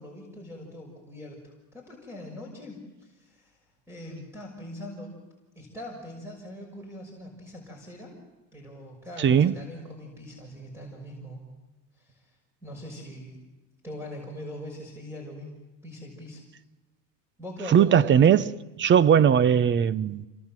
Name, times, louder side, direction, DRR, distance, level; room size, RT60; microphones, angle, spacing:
voice 1, 0.0-3.6 3.9-5.2 5.6-8.1 8.5-11.4 11.9-12.3 12.6-13.4 13.8-15.5 15.8-16.4 17.4-18.2, left 1 dB, 5° right, 6.3 m, -41 dB
voice 2, 9.2-9.5 17.7-18.5 18.8-20.3, right 8 dB, 25° right, 0.8 m, -19 dB
28.5 x 23.5 x 7.6 m
supercardioid pair, 130°, 42 cm